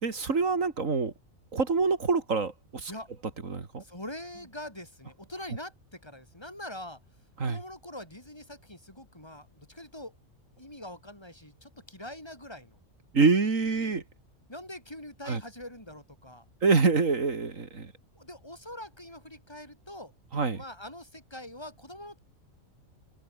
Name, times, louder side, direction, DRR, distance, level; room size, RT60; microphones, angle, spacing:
voice 1, 0.0-1.1 1.5-2.9 3.4-3.8 7.4-7.6 13.1-14.0 15.3-15.4 16.6-17.9 20.3-20.6, right 4 dB, 75° right, 2.9 m, -26 dB
voice 2, 3.8-7.0 7.4-10.1 10.6-12.8 14.5-16.4 18.2-20.1 20.5-22.2, left 1 dB, 20° left, 5.5 m, -43 dB
omnidirectional pair, 1.4 m